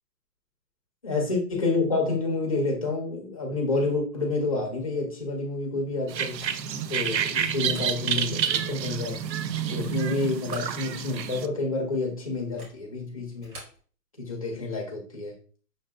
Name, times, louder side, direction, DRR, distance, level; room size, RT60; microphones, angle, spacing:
voice 1, 1.0-6.4 6.9-9.2 9.6-13.5 14.2-15.3, left 3 dB, 20° left, -1 dB, 0.6 m, -29 dB
sound 1, 6.1-11.5, right 8 dB, 85° right, 0.6 m, -29 dB
sound 2, 6.2-6.8 7.5-8.0 8.4-8.5 9.2-9.8 10.3-11.1 11.4-11.5 12.4-12.8 13.3-13.8, right 1 dB, 30° right, 1.9 m, -48 dB
6.7 x 2.6 x 2.2 m, 0.42 s
hypercardioid pair, 160°, 49 cm